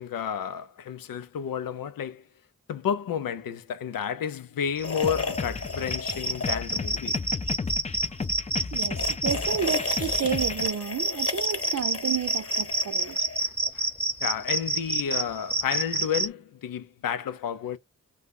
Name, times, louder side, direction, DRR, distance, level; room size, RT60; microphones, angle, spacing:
voice 1, 0.0-2.2 2.7-7.2 13.4-13.9 14.2-17.8, left 8 dB, 85° left, 0.6 m, -31 dB
sound 1, 4.8-7.0 7.3-7.5 8.6-13.6, left 4 dB, 45° left, 0.9 m, -35 dB
sound 2, 4.8-16.3, right 2 dB, 5° right, 0.9 m, -28 dB
sound 3, 5.0-10.7, left 4 dB, 20° left, 0.4 m, -34 dB
voice 2, 8.7-13.2, right 9 dB, 55° right, 0.6 m, -31 dB
2.8 x 2.2 x 3.5 m
cardioid pair, 45°, 33 cm